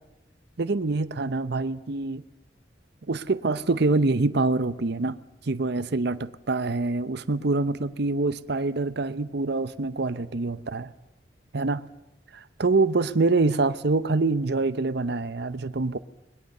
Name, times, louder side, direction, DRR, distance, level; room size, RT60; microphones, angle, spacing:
voice 1, 0.6-2.2 3.1-5.2 5.5-10.9 11.5-11.8 12.3-16.0, right 3 dB, 65° right, 0.8 m, -25 dB
21.0 x 21.0 x 6.6 m
head